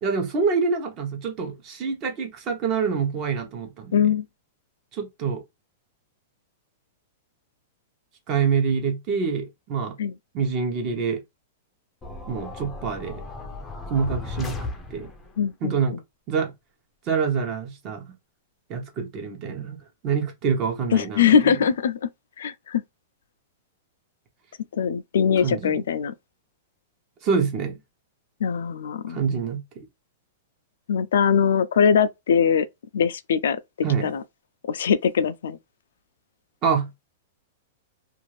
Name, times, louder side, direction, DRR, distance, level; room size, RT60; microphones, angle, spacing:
voice 1, 0.0-4.1 4.9-5.4 8.3-9.9 10.3-11.2 12.3-13.2 13.9-14.6 14.9-15.1 15.6-16.0 16.3-16.5 17.1-18.1 18.7-19.8 20.0-21.4 25.4-25.7 27.2-27.7 29.1-29.6 33.8-34.1 36.6-36.9, right 5 dB, 30° right, 0.9 m, -26 dB
voice 2, 3.9-4.2 10.0-10.1 15.4-15.7 20.9-22.0 22.4-22.8 24.8-26.1 28.4-29.2 30.9-32.7 32.9-33.6 34.0-34.2 34.7-35.6, left 7 dB, 85° left, 0.4 m, -21 dB
sound 1, 12.0-15.4, left 2 dB, 10° left, 0.5 m, -35 dB
2.5 x 2.4 x 3.1 m
supercardioid pair, 160°, 0 cm